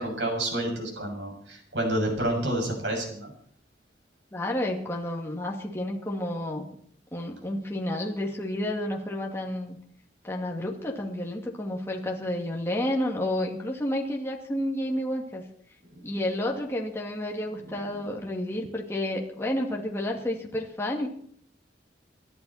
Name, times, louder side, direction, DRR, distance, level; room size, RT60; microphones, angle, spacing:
voice 1, 0.0-3.3 16.1-16.2, right 1 dB, 85° right, 2 dB, 6.8 m, -29 dB
voice 2, 4.3-6.7 7.1-9.8 10.2-15.4 16.0-21.1, left 1 dB, 15° left, -1 dB, 2.4 m, -30 dB
27.0 x 12.0 x 4.3 m, 0.62 s
head